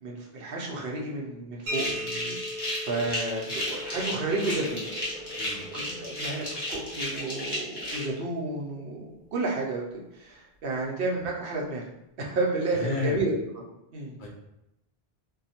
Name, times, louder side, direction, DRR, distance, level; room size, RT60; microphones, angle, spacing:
voice 1, 0.0-4.9 5.7-9.8 10.1-11.8 12.2-13.6 13.9-14.2, right 2 dB, 70° right, -2 dB, 0.8 m, -31 dB
sound 1, 1.7-8.0, left 1 dB, 25° left, 0.9 m, -33 dB
sound 2, 1.7-9.2, left 1 dB, 85° right, 1.1 m, -41 dB
Water tap faucet, 3.8-9.3 9.6-10.1 10.6-10.9 11.6-11.7, right 1 dB, 10° left, 1.4 m, -48 dB
voice 2, 5.3-5.6 12.7-13.2 14.2-14.3, left 3 dB, 60° left, -1 dB, 0.7 m, -32 dB
2.7 x 2.2 x 2.8 m, 0.88 s
omnidirectional pair, 1.0 m